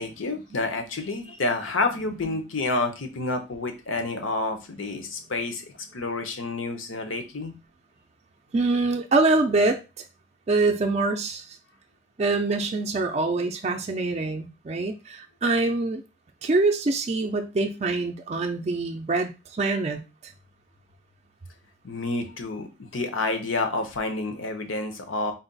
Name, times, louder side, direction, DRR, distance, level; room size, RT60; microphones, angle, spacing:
voice 1, 0.0-5.7 5.9-7.5 21.8-25.3, left 3 dB, 85° left, 6 dB, 0.8 m, -29 dB
voice 2, 8.5-9.8 10.5-11.6 12.2-16.0 16.4-20.3, right 3 dB, 35° right, 4 dB, 0.4 m, -25 dB
4.0 x 2.3 x 3.9 m, 0.28 s
head